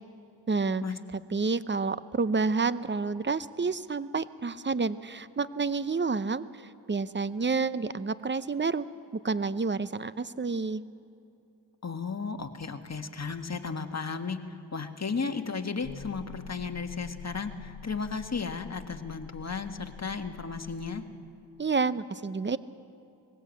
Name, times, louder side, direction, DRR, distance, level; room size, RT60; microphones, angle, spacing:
voice 1, 0.5-0.8 1.3-6.4 6.9-8.8 9.2-10.8 21.6-22.6, right 4 dB, 25° right, 15 dB, 0.8 m, -29 dB
voice 2, 11.8-21.0, left 5 dB, 35° left, 6 dB, 1.6 m, -34 dB
sound 1, 15.8-21.0, left 5 dB, 50° left, 2.3 m, -46 dB
21.0 x 16.0 x 8.3 m, 2.7 s
cardioid pair, 55°, 45 cm